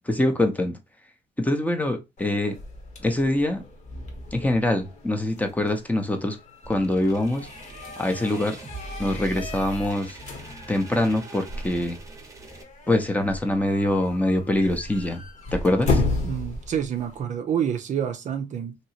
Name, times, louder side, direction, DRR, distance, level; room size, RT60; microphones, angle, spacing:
voice 1, 0.1-0.8 1.4-2.5 3.0-3.6 4.3-6.4 6.7-7.5 8.0-8.6 9.0-10.2 10.7-12.0 12.9-15.2 15.5-16.0, left 1 dB, 10° left, 0.7 m, -24 dB
sound 1, 2.2-17.2, left 3 dB, 45° left, 1.1 m, -34 dB
sound 2, 6.6-12.6, right 3 dB, 20° right, 0.9 m, -41 dB
voice 2, 16.2-18.8, right 8 dB, 45° right, 0.5 m, -28 dB
3.0 x 2.8 x 2.8 m
cardioid pair, 110°, 17 cm